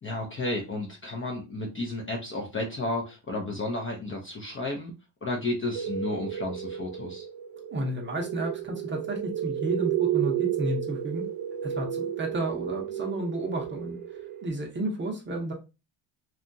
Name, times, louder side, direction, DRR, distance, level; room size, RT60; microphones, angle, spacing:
voice 1, 0.0-4.9 5.2-7.3, left 2 dB, 25° left, 1 dB, 0.5 m, -32 dB
sound 1, 5.7-14.5, right 11 dB, 85° right, 0.7 m, -32 dB
voice 2, 7.7-11.2 11.6-14.0 14.4-15.5, right 1 dB, 25° right, 1 dB, 0.6 m, -32 dB
2.7 x 2.3 x 2.6 m, 0.28 s
cardioid pair, 130°, 50 cm